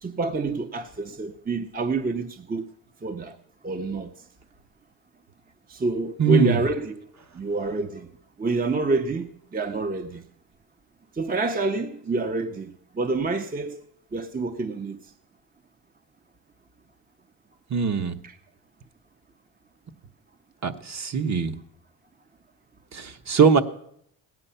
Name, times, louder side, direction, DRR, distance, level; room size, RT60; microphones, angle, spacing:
voice 1, 0.0-2.6 3.0-3.3 3.6-4.1 5.7-7.1 7.3-8.1 8.4-10.2 11.1-13.8 14.1-15.0 18.2-18.4, right 3 dB, 20° right, 0.7 m, -28 dB
voice 2, 6.2-6.7 17.7-18.1 20.6-21.5 22.9-23.6, right 6 dB, 35° right, 1.1 m, -21 dB
16.5 x 9.7 x 5.7 m
cardioid pair, 80°, 45 cm